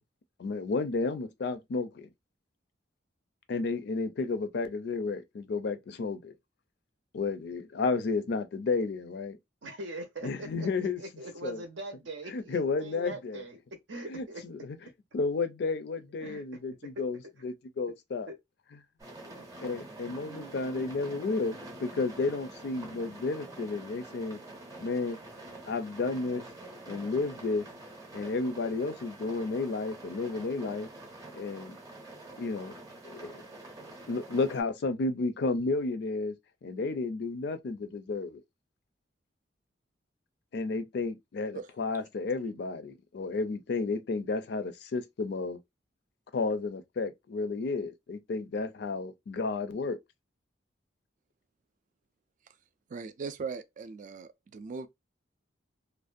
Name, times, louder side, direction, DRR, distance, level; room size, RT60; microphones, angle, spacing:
voice 1, 0.4-2.1 3.5-6.3 7.1-9.4 10.2-11.0 11.4-11.6 12.3-13.4 14.1-14.2 15.1-18.3 19.6-24.4 24.8-25.2 25.7-26.4 26.9-27.6 28.1-30.9 31.3-31.8 32.4-32.7 33.0-33.4 34.1-36.3 36.6-38.4 40.5-45.6 46.3-50.0, left 3 dB, 60° left, 0.4 m, -32 dB
voice 2, 9.6-10.7 11.0-13.6 13.9-14.4 16.2-16.4 17.0-17.1 18.3-18.4 19.2-19.4 20.2-21.4 32.8-32.9, right 2 dB, 80° right, 0.7 m, -43 dB
sound 1, 19.0-34.6, right 2 dB, 20° right, 0.6 m, -47 dB
voice 3, 52.9-54.9, right 5 dB, 45° right, 0.3 m, -39 dB
2.5 x 2.1 x 2.4 m
head